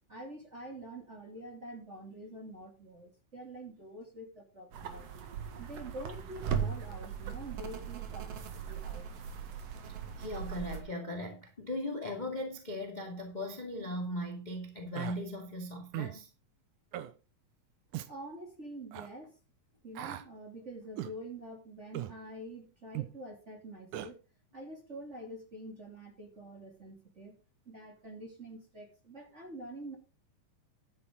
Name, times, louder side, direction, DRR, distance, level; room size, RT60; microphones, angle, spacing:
voice 1, 0.1-5.1 5.6-8.3 8.5-9.0 18.1-19.4 19.8-24.2 24.5-27.4 27.7-30.0, right 1 dB, 25° right, 2.6 m, -46 dB
sound 1, 4.7-10.8, right 8 dB, 55° right, 2.5 m, -39 dB
voice 2, 10.2-16.3, left 1 dB, 15° left, 1.9 m, -38 dB
Human voice, 14.9-15.2 15.9-16.2 16.9-17.1 17.9-18.1 18.9-19.1 19.9-20.3 21.0-21.2 21.9-22.2 22.9-23.1 23.9-24.1, right 14 dB, 80° right, 2.4 m, -38 dB
11.5 x 10.5 x 3.7 m
omnidirectional pair, 3.6 m